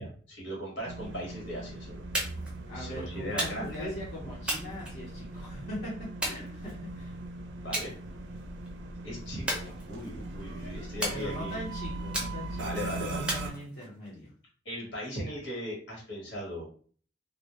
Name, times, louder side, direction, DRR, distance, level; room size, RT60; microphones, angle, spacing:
voice 1, 0.0-2.0 2.7-4.0 7.6-7.9 9.0-11.6 12.6-13.3 14.6-16.6, equal, 75° left, -2 dB, 1.1 m, -38 dB
sound 1, 0.8-13.5, right 2 dB, 70° right, 0.4 m, -40 dB
sound 2, 2.1-2.6 3.4-3.8 4.5-5.4 6.2-7.0 7.7-7.9 8.3-8.7 9.5-10.2 11.0-11.6 12.1-12.7 13.3-14.1, right 1 dB, 5° right, 0.5 m, -35 dB
voice 2, 2.7-7.2 11.1-14.3, equal, 55° left, -7 dB, 0.7 m, -41 dB
2.1 x 2.0 x 2.8 m, 0.43 s
head